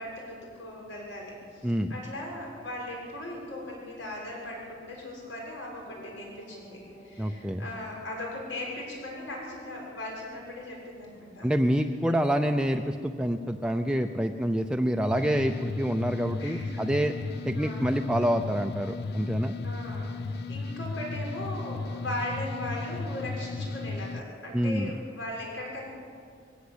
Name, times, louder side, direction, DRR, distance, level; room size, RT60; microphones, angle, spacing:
voice 1, 0.0-11.6 12.1-12.2 16.4-16.8 17.6-18.0 19.6-25.9, left 1 dB, 85° left, -2 dB, 6.6 m, -38 dB
sound 1, 5.8-10.8, equal, 35° left, 6.7 m, -54 dB
voice 2, 7.2-7.7 11.4-17.1 17.4-19.5 24.5-24.9, equal, 5° right, 4 dB, 0.6 m, -27 dB
sound 2, 15.1-24.2, left 3 dB, 60° left, 0.7 m, -35 dB
21.5 x 17.0 x 8.1 m, 2.3 s
head